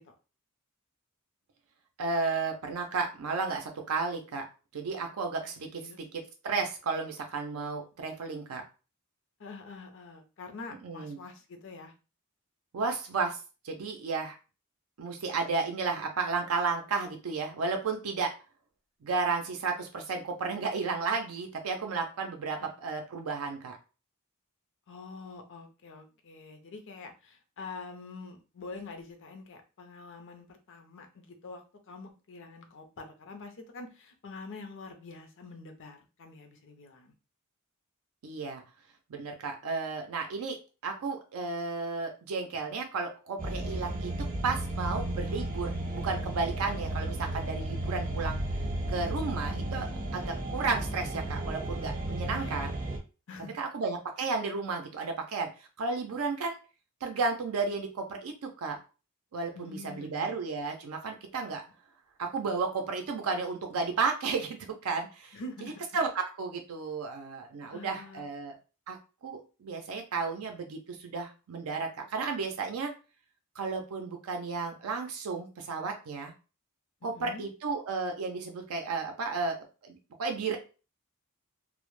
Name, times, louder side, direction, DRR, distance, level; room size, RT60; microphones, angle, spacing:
voice 1, 2.0-4.5 4.7-6.1 6.4-8.6 10.8-11.2 12.7-13.4 13.6-14.4 15.0-18.3 19.0-23.8 38.2-38.6 39.1-40.6 40.8-48.4 48.9-52.8 53.5-56.5 57.0-58.8 59.3-61.6 62.2-68.6 68.9-69.0 69.2-72.9 73.6-76.3 77.0-80.6, right 4 dB, 75° right, 3 dB, 0.4 m, -33 dB
voice 2, 5.4-6.0 9.4-11.9 22.6-22.7 24.9-37.1 52.3-52.7 53.3-53.6 59.5-60.4 65.3-65.8 67.6-68.2 77.0-77.5, left 3 dB, 60° left, 5 dB, 0.5 m, -46 dB
sound 1, 43.4-53.0, right 1 dB, 40° right, 0.7 m, -34 dB
2.0 x 2.0 x 3.0 m, 0.32 s
head